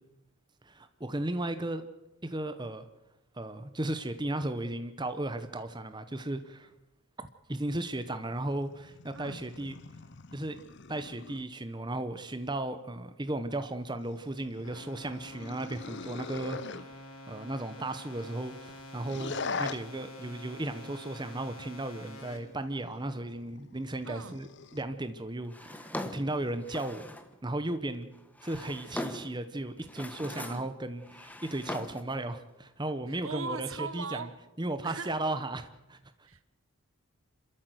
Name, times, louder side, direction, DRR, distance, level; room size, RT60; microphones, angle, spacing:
voice 1, 0.6-1.9 2.2-2.9 3.3-6.7 7.5-9.7 10.3-10.6 10.9-16.6 17.3-19.3 19.6-27.1 27.4-28.1 28.4-34.3 34.6-36.3, right 1 dB, 20° right, 10 dB, 0.9 m, -35 dB
sound 1, 8.3-11.5 14.0-16.8 19.0-19.8 21.9-24.9 26.1-26.5, left 4 dB, 50° left, 0.7 m, -42 dB
sound 2, 14.6-22.4, left 1 dB, 70° left, 4.0 m, -48 dB
voice 2, 16.5-16.8 19.3-19.6 24.0-24.4 30.3-30.7 33.1-34.4 34.8-35.1 36.2-36.4, right 4 dB, 65° right, 13 dB, 1.2 m, -40 dB
Drawer open or close, 25.5-27.3 28.1-29.4 29.8-30.7 31.0-32.1, left 1 dB, 5° left, 1.1 m, -41 dB
27.5 x 13.5 x 7.9 m, 0.94 s
head